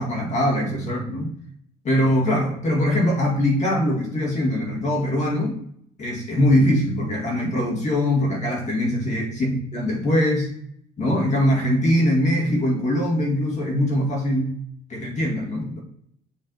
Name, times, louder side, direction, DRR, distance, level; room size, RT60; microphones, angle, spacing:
voice 1, 0.0-1.3 1.8-5.5 6.0-10.5 11.0-14.6 14.9-15.8, left 1 dB, 45° left, -1 dB, 1.9 m, -22 dB
7.3 x 3.3 x 4.0 m, 0.68 s
cardioid pair, 110°, 17 cm